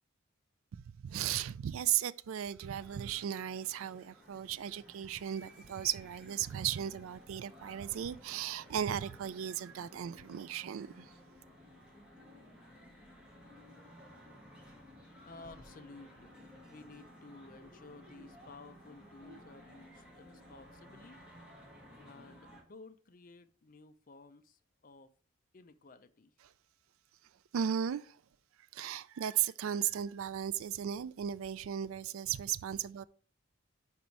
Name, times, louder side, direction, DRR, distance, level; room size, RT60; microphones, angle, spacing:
voice 1, 0.7-11.1 27.5-28.2 28.7-33.0, right 9 dB, 80° right, 0.3 m, -36 dB
sound 1, 2.7-22.6, equal, 5° right, 1.7 m, -56 dB
voice 2, 15.2-21.2 22.0-25.1 25.5-26.3, left 3 dB, 40° left, 0.5 m, -54 dB
5.4 x 5.1 x 4.5 m
head